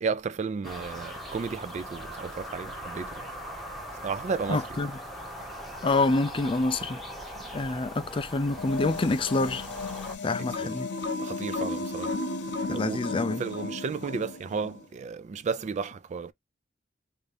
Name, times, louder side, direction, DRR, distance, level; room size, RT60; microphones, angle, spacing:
voice 1, 0.0-3.2 4.0-4.7 7.4-7.5 10.6-10.8 11.2-12.2 12.7-16.3, right 5 dB, 40° right, 0.3 m, -33 dB
sound 1, 0.6-10.2, equal, ahead, 0.8 m, -40 dB
voice 2, 4.5-4.9 5.8-7.0 7.5-9.7 10.2-10.9 12.7-13.4, left 3 dB, 30° left, 0.4 m, -27 dB
sound 2, 8.5-14.8, left 3 dB, 65° left, 0.7 m, -34 dB
3.4 x 2.7 x 3.3 m
head